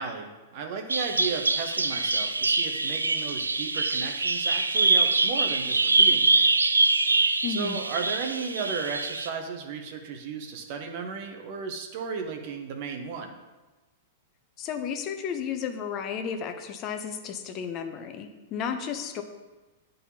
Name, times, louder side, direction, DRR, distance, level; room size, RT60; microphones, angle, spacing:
voice 1, 0.0-6.7 7.5-13.4, right 5 dB, 50° right, 4 dB, 0.9 m, -35 dB
Bird vocalization bird call bird song, 0.9-9.3, right 3 dB, 85° right, 0.4 m, -24 dB
voice 2, 7.4-7.8 14.6-19.2, left 7 dB, 35° left, 7 dB, 0.7 m, -33 dB
10.5 x 3.9 x 2.8 m, 1.2 s
figure-of-eight pair, 100°, 0 cm